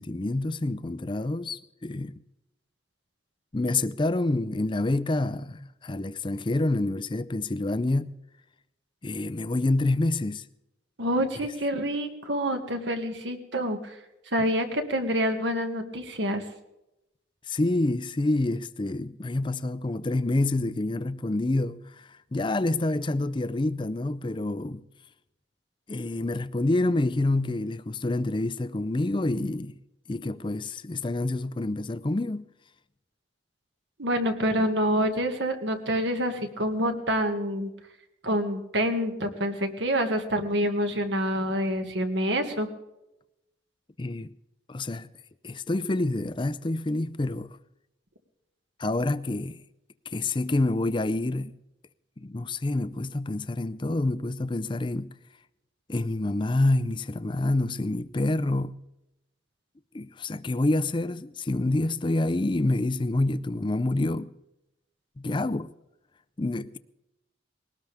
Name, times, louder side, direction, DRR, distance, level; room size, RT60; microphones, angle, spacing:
voice 1, 0.0-2.1 3.5-8.1 9.0-10.4 17.5-24.8 25.9-29.7 30.1-32.5 44.0-44.3 44.7-45.1 45.4-47.5 48.8-49.6 50.1-51.5 52.2-55.1 55.9-58.7 59.9-64.3 65.2-65.7 66.4-66.8, left 2 dB, 25° left, 0.5 m, -27 dB
voice 2, 11.0-14.0 14.3-16.4 34.0-37.7 38.2-42.7, equal, 70° right, 2.0 m, -27 dB
21.0 x 18.5 x 3.6 m
head